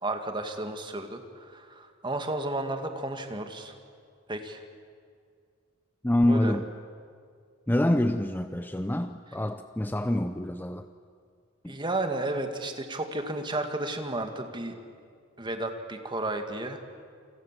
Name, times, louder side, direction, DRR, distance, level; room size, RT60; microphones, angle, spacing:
voice 1, 0.0-3.7 4.3-4.6 6.2-6.6 11.7-14.8 15.4-16.8, right 2 dB, 25° right, 2.2 m, -33 dB
voice 2, 6.0-6.7 7.7-10.9 11.6-11.8, left 1 dB, 10° left, 0.6 m, -26 dB
29.0 x 27.0 x 7.6 m
head